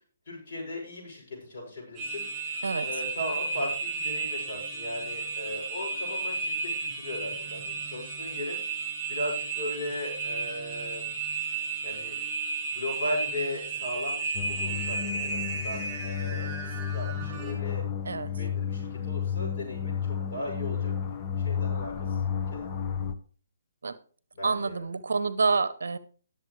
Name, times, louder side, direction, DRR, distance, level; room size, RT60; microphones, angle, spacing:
voice 1, 0.3-2.2 2.8-8.6 9.1-11.1 11.8-12.1 12.7-17.8 18.3-21.2 21.4-22.7 24.3-24.8, left 1 dB, 40° left, -2 dB, 7.3 m, -37 dB
sound 1, 1.9-17.5, right 4 dB, 15° right, 4.8 m, -33 dB
sound 2, 14.3-23.1, left 8 dB, 25° left, 0.9 m, -32 dB
voice 2, 24.4-26.0, right 4 dB, 60° right, 15 dB, 0.9 m, -27 dB
20.0 x 7.3 x 3.3 m, 0.42 s
figure-of-eight pair, 135°, 0 cm